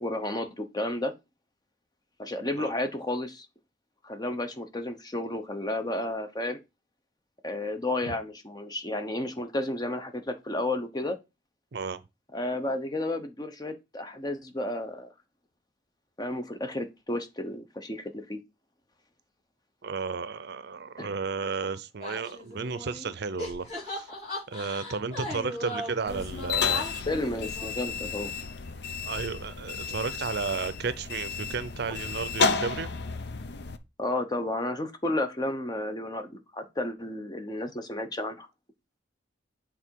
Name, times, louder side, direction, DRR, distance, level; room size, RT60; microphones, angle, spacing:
voice 1, 0.0-1.1 2.2-3.5 4.0-6.6 7.4-11.2 12.3-15.1 16.2-18.4 21.0-21.1 27.1-28.3 34.0-38.5, left 1 dB, 20° left, 0.8 m, -32 dB
voice 2, 19.8-24.1 24.5-26.9 29.0-32.9, right 5 dB, 60° right, 0.6 m, -33 dB
sound 1, 22.0-23.1 23.4-28.1, left 1 dB, 40° left, 4.4 m, -38 dB
sound 2, 26.1-33.8, left 5 dB, 60° left, 0.6 m, -32 dB
7.9 x 3.7 x 4.6 m
head